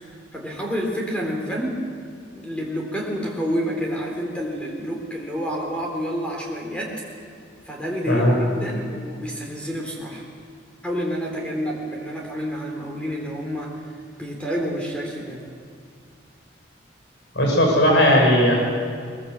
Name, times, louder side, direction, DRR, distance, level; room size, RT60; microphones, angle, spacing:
voice 1, 0.1-1.8 2.4-7.0 7.7-10.2 10.8-13.7 14.2-15.5, equal, 5° left, -1 dB, 3.9 m, -28 dB
voice 2, 17.3-18.5, equal, 75° left, -1 dB, 6.8 m, -17 dB
22.5 x 22.0 x 8.0 m, 2.2 s
head